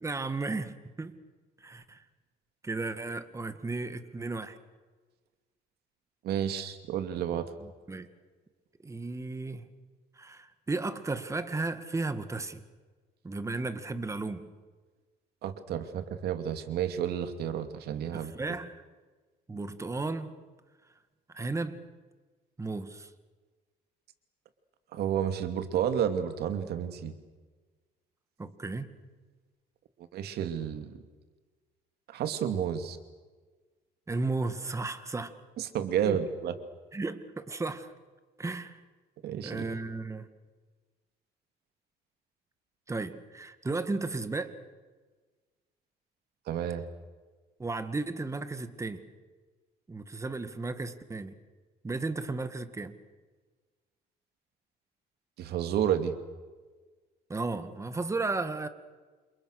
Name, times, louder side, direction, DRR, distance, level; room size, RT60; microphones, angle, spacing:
voice 1, 0.0-1.2 1.6-2.0 2.6-4.6 7.6-8.1 8.8-9.7 10.2-12.6 13.2-14.5 18.1-18.8 19.5-20.4 21.3-21.8 22.6-23.1 28.4-28.9 34.1-35.3 36.0-36.2 36.9-37.9 38.4-38.8 39.4-40.3 42.9-44.5 47.6-49.0 49.9-51.3 51.8-53.0 57.3-58.7, right 3 dB, 15° right, 10 dB, 2.0 m, -34 dB
voice 2, 6.2-7.5 15.4-18.3 24.9-27.1 30.1-31.0 32.1-33.0 35.6-36.5 39.2-39.8 46.5-46.9 55.4-56.2, right 9 dB, 70° right, 9 dB, 2.5 m, -31 dB
29.5 x 27.5 x 6.6 m, 1.4 s
cardioid pair, 110°, 17 cm